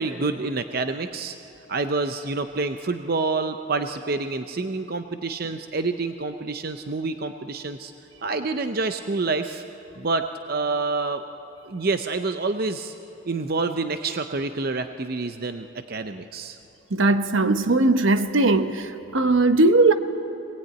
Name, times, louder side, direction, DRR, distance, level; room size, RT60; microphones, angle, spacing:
voice 1, 0.0-1.4 1.7-7.9 8.2-9.6 10.0-11.2 11.6-12.9 13.3-16.6, right 3 dB, 50° right, 0.7 m, -27 dB
voice 2, 16.9-19.9, right 2 dB, 75° right, 1.0 m, -19 dB
24.5 x 19.0 x 9.1 m
head